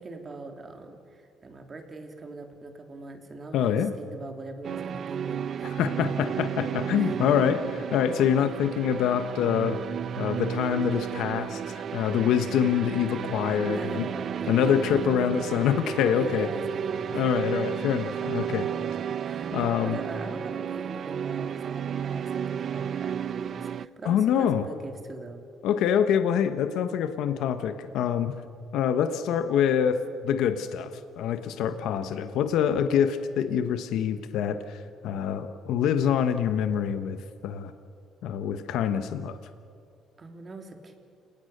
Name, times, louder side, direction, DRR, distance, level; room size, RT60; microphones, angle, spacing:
voice 1, 0.0-5.9 7.0-7.6 13.6-15.3 15.8-17.2 19.2-25.4 40.2-41.0, right 3 dB, 30° right, 4 dB, 3.1 m, -42 dB
voice 2, 3.5-3.9 5.6-7.6 7.9-9.8 10.2-14.1 14.5-16.5 17.1-18.7 19.5-20.0 24.0-24.7 25.6-28.4 28.7-37.2 37.4-37.7 38.2-39.4, left 8 dB, 75° left, 9 dB, 1.2 m, -25 dB
sound 1, 4.6-23.9, right 8 dB, 50° right, 0.5 m, -32 dB
29.5 x 19.0 x 6.7 m, 2.4 s
cardioid pair, 115°, 0 cm